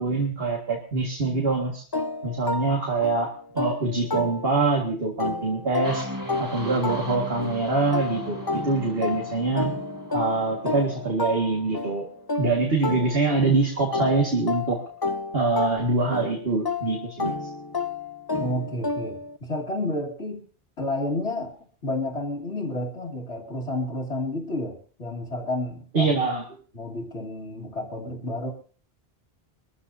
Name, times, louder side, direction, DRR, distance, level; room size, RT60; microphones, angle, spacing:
voice 1, 0.0-1.8 2.2-3.3 3.5-6.1 6.4-9.7 10.1-12.1 12.4-14.8 15.3-17.3 25.9-26.4, right 3 dB, 60° right, 0 dB, 2.2 m, -24 dB
sound 1, 1.9-4.8 5.2-13.5 13.9-19.4, left 3 dB, 30° left, 0.5 m, -31 dB
sound 2, 5.8-11.6, right 1 dB, 20° right, 1.7 m, -38 dB
voice 2, 18.4-20.4 20.8-21.6 21.8-26.1 26.7-28.5, left 1 dB, 85° left, -4 dB, 2.9 m, -30 dB
23.5 x 14.0 x 2.8 m, 0.42 s
omnidirectional pair, 1.1 m